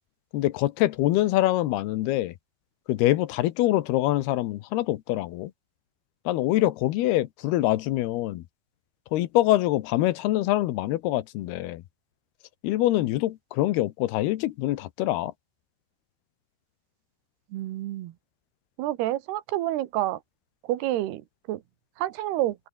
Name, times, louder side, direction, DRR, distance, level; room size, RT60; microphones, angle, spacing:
voice 1, 0.3-2.3 2.9-5.5 6.3-8.4 9.1-11.8 12.6-15.3, left 15 dB, 85° left, 3.0 m, -24 dB
voice 2, 17.5-18.1 18.8-20.2 20.7-21.2 21.5-21.6 22.0-22.6, right 14 dB, 85° right, 3.3 m, -28 dB
omnidirectional pair, 4.6 m